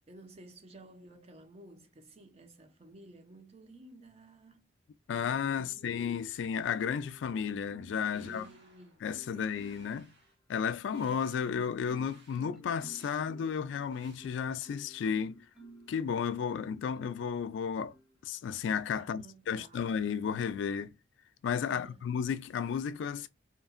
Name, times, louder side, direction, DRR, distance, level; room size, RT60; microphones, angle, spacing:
voice 1, 0.1-4.7 5.6-5.9 6.3-6.4 8.1-9.0 19.0-19.9 21.7-22.1, right 1 dB, 35° right, 0.5 m, -54 dB
voice 2, 5.1-8.5 9.0-10.1 10.5-15.4 15.9-17.9 18.2-20.9 21.4-23.3, left 7 dB, 75° left, 0.3 m, -33 dB
Marimba xylophone, 5.4-6.4 6.8-8.6 9.1-10.0 10.5-16.0 16.5-17.3 17.9-18.1, right 1 dB, ahead, 0.8 m, -54 dB
sound 1, 7.9-9.0 9.4-10.4 10.9-11.6 11.9-12.4 12.9-13.3 13.9-14.2, right 2 dB, 85° right, 1.3 m, -60 dB
2.8 x 2.4 x 2.4 m
head